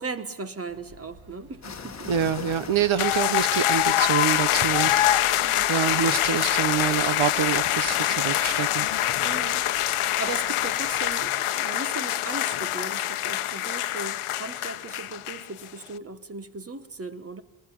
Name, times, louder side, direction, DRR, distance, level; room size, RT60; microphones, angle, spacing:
voice 1, 0.0-2.1 5.4-5.7 9.2-17.4, right 3 dB, 30° right, 12 dB, 1.4 m, -37 dB
sound 1, 0.7-11.3, right 2 dB, 50° right, 2.2 m, -52 dB
sound 2, 1.6-9.8, left 6 dB, 35° left, 1.4 m, -44 dB
voice 2, 2.1-8.9, right 8 dB, 70° right, 16 dB, 1.3 m, -26 dB
sound 3, 3.0-15.7, left 13 dB, 85° left, 0.9 m, -25 dB
24.5 x 21.0 x 9.9 m, 1.1 s
wide cardioid pair, 180°, 49 cm